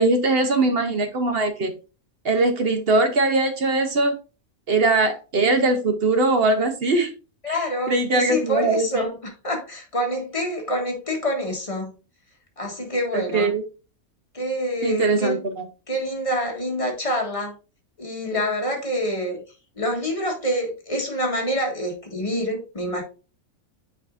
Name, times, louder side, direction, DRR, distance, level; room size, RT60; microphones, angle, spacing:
voice 1, 0.0-1.7 2.2-4.1 4.7-7.1 7.5-7.6 7.9-9.1 13.1-13.6 14.8-15.6, right 2 dB, 50° right, 1.0 m, -21 dB
voice 2, 7.4-11.9 12.6-13.5 14.3-15.4 15.9-17.5 18.0-19.4 19.8-23.0, equal, 25° left, 1.6 m, -26 dB
7.9 x 4.9 x 2.6 m
omnidirectional pair, 1.5 m